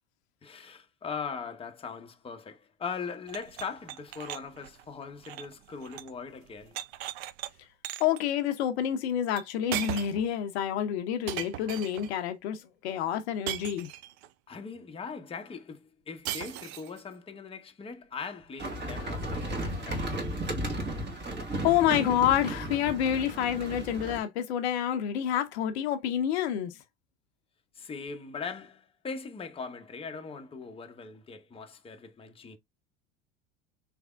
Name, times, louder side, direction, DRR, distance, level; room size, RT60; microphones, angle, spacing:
voice 1, 0.4-6.8 14.5-20.1 27.7-32.6, left 5 dB, 15° left, 0.8 m, -40 dB
sound 1, 3.3-6.2 6.4-7.5 7.8-8.2 9.4-9.5 9.7-10.3 11.3-12.1 13.5-14.3 16.2-17.0, right 13 dB, 60° right, 0.5 m, -38 dB
voice 2, 8.0-13.9 21.6-26.8, left 10 dB, 65° left, 0.7 m, -28 dB
sound 2, 18.6-24.2, right 1 dB, 30° right, 1.7 m, -34 dB
3.4 x 3.4 x 2.3 m
hypercardioid pair, 80°, 34 cm